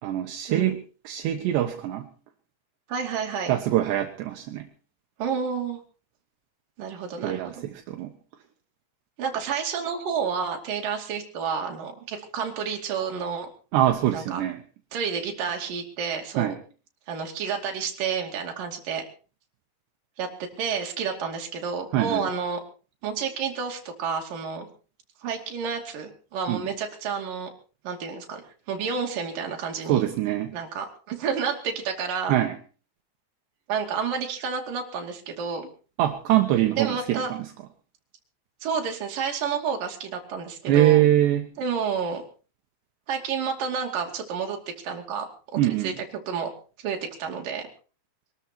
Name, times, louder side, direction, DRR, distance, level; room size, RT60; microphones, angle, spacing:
voice 1, 0.0-0.8 1.0-2.1 3.5-4.7 7.2-8.1 13.7-14.6 16.4-16.6 21.9-22.3 26.5-26.6 29.8-30.5 32.3-32.6 36.0-37.5 40.7-41.5 45.6-46.0, right 13 dB, 75° right, 5 dB, 3.2 m, -23 dB
voice 2, 2.9-3.5 5.2-5.8 6.8-7.6 9.2-13.5 14.1-14.4 14.9-16.5 17.1-19.0 20.2-22.6 23.0-24.7 25.2-27.5 27.8-28.4 28.7-30.0 30.5-32.4 33.7-35.7 36.8-37.3 38.6-41.0 41.6-42.2 43.1-45.3 45.8-46.5 46.8-47.7, right 6 dB, 50° right, 2 dB, 3.9 m, -30 dB
23.0 x 13.0 x 4.4 m, 0.37 s
omnidirectional pair, 5.2 m